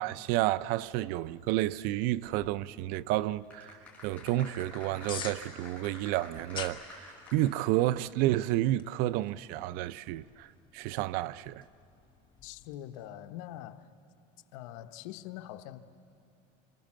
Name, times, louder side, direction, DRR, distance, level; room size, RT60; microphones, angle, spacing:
voice 1, 0.0-7.0 7.3-10.5 10.7-11.6, right 15 dB, 65° right, 0.5 m, -30 dB
sound 1, 2.2-12.7, left 8 dB, 30° left, 1.4 m, -49 dB
sound 2, 3.4-8.0 8.2-8.3, left 3 dB, 10° left, 6.5 m, -49 dB
voice 2, 12.4-13.9 14.5-15.8, left 13 dB, 80° left, 1.0 m, -43 dB
29.0 x 27.0 x 7.4 m
cardioid pair, 145°, 16 cm